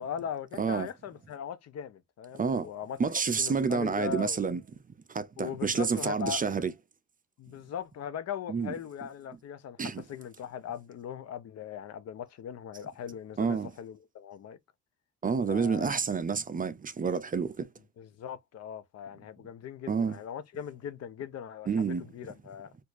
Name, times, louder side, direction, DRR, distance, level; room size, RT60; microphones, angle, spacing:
voice 1, 0.0-3.0 3.4-4.4 5.4-6.5 7.4-14.6 15.4-15.9 18.0-22.7, left 8 dB, 55° left, 0.6 m, -39 dB
voice 2, 0.6-0.9 2.4-2.7 3.0-4.6 5.1-6.7 8.5-8.7 9.8-10.0 13.4-13.7 15.2-17.7 19.9-20.2 21.7-22.0, right 5 dB, 30° right, 0.5 m, -29 dB
4.4 x 2.6 x 2.5 m
cardioid pair, 90°, 30 cm